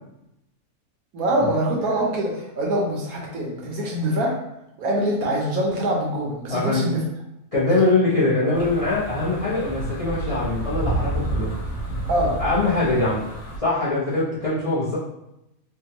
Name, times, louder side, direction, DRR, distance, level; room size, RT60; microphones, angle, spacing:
voice 1, 1.1-4.4 4.8-7.0 7.8-7.9 12.1-12.4, right 1 dB, 75° right, -1 dB, 1.2 m, -24 dB
voice 2, 6.5-6.9 7.5-11.6 12.4-13.3 13.6-15.0, left 2 dB, 35° left, -8 dB, 0.5 m, -22 dB
sound 1, 8.5-13.6, right 2 dB, 50° left, 1.3 m, -30 dB
3.4 x 2.2 x 2.8 m, 0.85 s
omnidirectional pair, 1.6 m